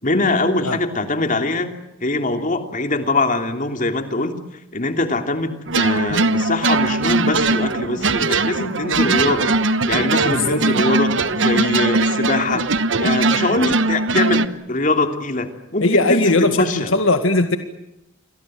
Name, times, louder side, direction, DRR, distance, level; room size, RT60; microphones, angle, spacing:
voice 1, 0.0-4.4 4.7-12.6 13.0-16.9, left 2 dB, 40° left, 6 dB, 3.0 m, -22 dB
sound 1, 5.7-14.5, right 3 dB, 65° right, 1.2 m, -20 dB
voice 2, 10.2-10.6 15.8-17.6, left 2 dB, 85° left, 7 dB, 2.0 m, -18 dB
29.5 x 23.0 x 7.8 m, 0.85 s
head